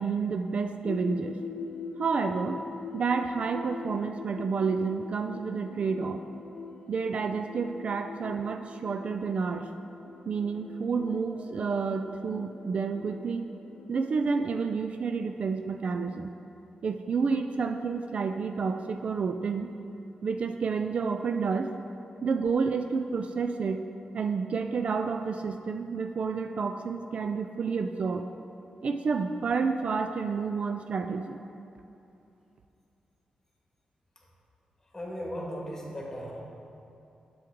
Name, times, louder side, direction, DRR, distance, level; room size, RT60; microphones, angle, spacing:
voice 1, 0.0-1.4 2.0-2.6 2.9-6.2 6.9-9.7 10.3-13.5 13.9-16.3 16.8-19.7 20.2-21.7 22.2-23.9 24.1-28.3 28.8-31.4, right 5 dB, 55° right, 7 dB, 0.3 m, -30 dB
sound 1, 0.8-14.6, left 5 dB, 80° left, 0.3 m, -44 dB
voice 2, 34.9-36.4, equal, 20° left, -3 dB, 1.6 m, -37 dB
7.6 x 7.0 x 3.6 m, 2.8 s
cardioid pair, 95°, 2 cm